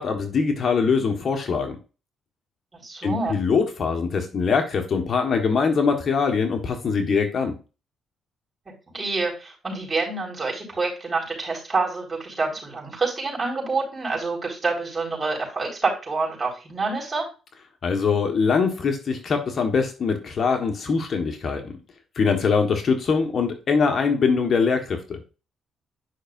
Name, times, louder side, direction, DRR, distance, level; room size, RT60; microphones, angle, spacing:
voice 1, 0.0-1.8 3.0-7.6 17.8-21.8 22.1-25.2, left 5 dB, 50° left, 4 dB, 1.4 m, -23 dB
voice 2, 2.7-3.4 8.9-17.3, right 3 dB, 30° right, -2 dB, 4.4 m, -27 dB
10.0 x 5.6 x 2.6 m, 0.33 s
cardioid pair, 90°, 0 cm